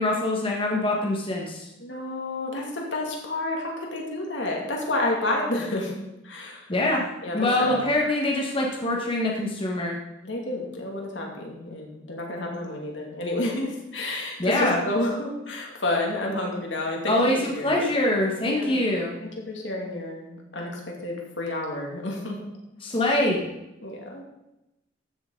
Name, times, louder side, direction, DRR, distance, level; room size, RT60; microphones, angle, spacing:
voice 1, 0.0-1.7 6.7-7.0 7.3-10.0 14.4-14.8 17.1-19.2 22.8-23.4, left 1 dB, 30° left, -1 dB, 1.5 m, -24 dB
voice 2, 1.8-5.9 6.2-6.7 7.2-7.8 10.2-17.9 18.4-18.9 19.2-22.4 22.8-23.0 23.8-24.2, left 1 dB, 75° left, 0 dB, 2.5 m, -30 dB
14.5 x 7.0 x 3.9 m, 0.92 s
head